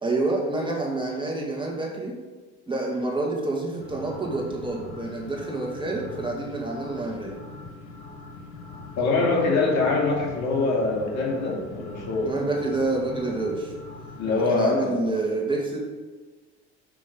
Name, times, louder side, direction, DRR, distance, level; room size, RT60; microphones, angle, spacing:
voice 1, 0.0-2.2 2.7-7.4 12.2-13.7 14.3-15.8, right 2 dB, 15° right, -2 dB, 2.1 m, -28 dB
sound 1, 3.8-14.5, left 3 dB, 85° left, 1.5 m, -42 dB
voice 2, 9.0-12.4 14.2-14.9, left 3 dB, 55° left, -2 dB, 2.4 m, -24 dB
6.2 x 6.0 x 5.4 m, 1.3 s
hypercardioid pair, 75°, 33 cm